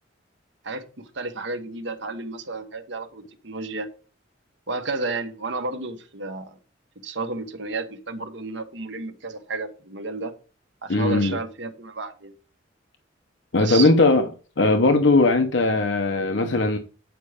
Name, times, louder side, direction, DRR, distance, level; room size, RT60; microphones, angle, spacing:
voice 1, 0.6-3.9 4.7-6.6 7.0-10.3 10.8-12.3 13.6-13.9, right 3 dB, 65° right, 1.3 m, -32 dB
voice 2, 10.9-11.4 13.5-14.3 14.6-16.8, left 2 dB, 65° left, 0.8 m, -19 dB
9.2 x 5.4 x 4.9 m
head